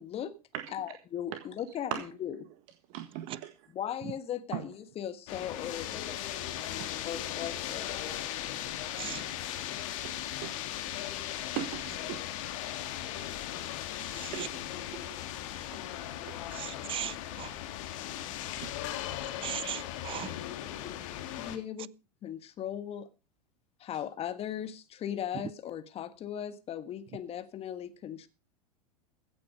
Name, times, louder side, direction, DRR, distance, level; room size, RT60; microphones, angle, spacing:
voice 1, 0.0-0.4 0.7-1.9 2.2-2.3 3.7-6.2 7.0-8.0 20.8-21.0 21.4-21.9 22.2-23.1 23.8-28.3, left 10 dB, 30° left, 1.5 m, -38 dB
voice 2, 2.9-3.7 4.5-4.6 8.9-9.0 10.0-10.1 10.4-10.6 11.5-12.2 14.0-15.2 15.7-15.8 16.3-16.4 18.6-18.8, right 12 dB, 50° right, 1.6 m, -39 dB
sound 1, 5.3-21.6, left 12 dB, 55° left, 2.0 m, -38 dB
voice 3, 14.2-14.5 16.5-17.5 19.4-20.3, right 12 dB, 25° right, 0.5 m, -38 dB
16.0 x 8.7 x 5.2 m
figure-of-eight pair, 90°, 20 cm